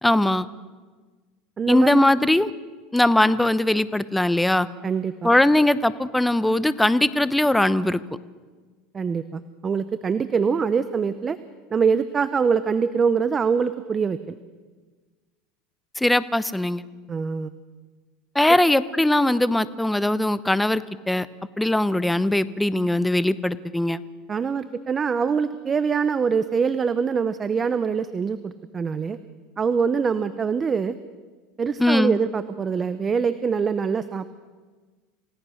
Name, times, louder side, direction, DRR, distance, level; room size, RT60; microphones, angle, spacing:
voice 1, 0.0-0.4 1.7-2.5 2.9-4.7 5.2-8.0 16.0-16.8 18.3-21.3 21.6-24.0 31.8-32.2, left 1 dB, 5° left, 16 dB, 0.8 m, -20 dB
voice 2, 1.6-1.9 4.8-5.3 8.9-11.4 11.7-14.4 17.1-17.5 24.3-29.2 29.6-30.9 31.6-34.3, right 6 dB, 25° right, 13 dB, 0.8 m, -24 dB
28.5 x 17.0 x 6.5 m, 1.4 s
supercardioid pair, 115°, 0 cm